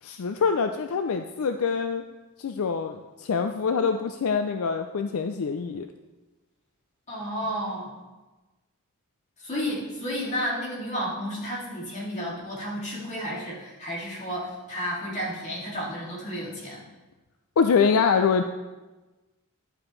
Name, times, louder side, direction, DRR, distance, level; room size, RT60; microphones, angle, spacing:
voice 1, 0.0-2.0 2.4-5.9 17.6-18.4, left 5 dB, 70° left, 7 dB, 0.4 m, -25 dB
voice 2, 7.1-8.0 9.4-16.8, equal, 30° left, -5 dB, 2.5 m, -32 dB
10.5 x 7.6 x 3.1 m, 1.2 s
head